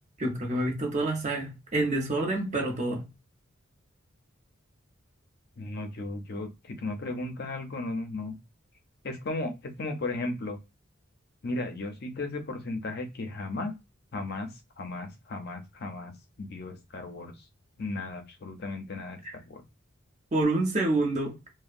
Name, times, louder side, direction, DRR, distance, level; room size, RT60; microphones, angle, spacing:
voice 1, 0.2-3.1 19.2-19.3 20.3-21.4, right 2 dB, 35° right, 0.8 m, -27 dB
voice 2, 5.6-8.4 9.0-10.6 11.4-13.7 14.1-14.5 14.8-16.1 16.4-17.3 17.8-19.6, left 2 dB, 50° left, 0.5 m, -35 dB
2.7 x 2.0 x 2.5 m
head